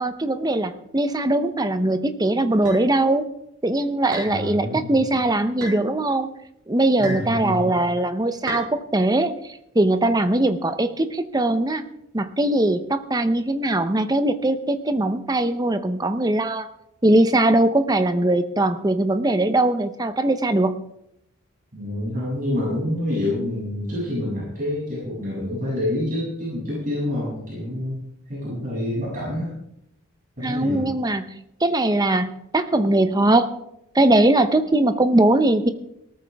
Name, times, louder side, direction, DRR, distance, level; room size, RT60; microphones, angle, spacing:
voice 1, 0.0-3.3 3.6-6.3 6.7-9.3 9.7-11.8 12.1-16.7 17.0-20.8 30.4-31.4 31.6-33.5 33.9-35.7, right 1 dB, 15° right, 10 dB, 0.8 m, -20 dB
sound 1, 2.7-2.8 4.1-4.4 5.6-5.8 7.0-7.3 8.5-8.7, right 1 dB, 60° right, 7.2 m, -32 dB
voice 2, 4.3-5.2 7.0-7.8 21.7-28.0 28.3-29.5 30.4-30.8, left 1 dB, 40° right, -7 dB, 7.2 m, -27 dB
18.5 x 13.5 x 3.5 m, 0.78 s
head